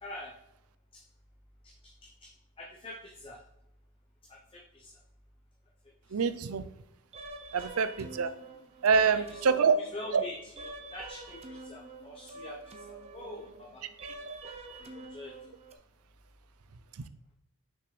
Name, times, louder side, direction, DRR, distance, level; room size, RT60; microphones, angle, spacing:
voice 1, 0.0-0.3 0.9-1.0 1.6-2.3 2.6-3.4 4.2-5.0 6.0-6.2 9.0-13.9 14.8-15.4, left 1 dB, 25° left, -1 dB, 0.7 m, -45 dB
voice 2, 6.1-6.6 7.5-8.3 8.8-9.7 10.1-10.2 14.0-14.4, right 5 dB, 85° right, 12 dB, 0.5 m, -26 dB
sound 1, 7.1-15.7, right 2 dB, 30° right, 0.7 m, -47 dB
6.2 x 6.1 x 3.2 m, 0.83 s
head